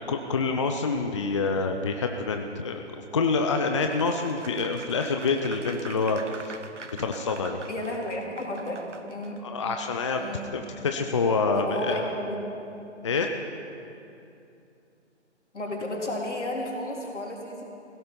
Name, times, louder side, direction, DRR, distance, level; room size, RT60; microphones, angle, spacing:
voice 1, 0.0-6.5 7.0-7.6 9.4-10.2 10.5-12.0 13.0-13.3, left 4 dB, 25° left, 5 dB, 0.5 m, -27 dB
Applause, 3.8-9.4, right 4 dB, 80° right, 1.2 m, -44 dB
voice 2, 7.7-8.8 9.1-9.4 10.2-10.5 11.6-12.4 15.5-17.6, left 1 dB, 75° left, -1 dB, 3.5 m, -32 dB
17.0 x 16.0 x 5.3 m, 2.7 s
figure-of-eight pair, 145°, 36 cm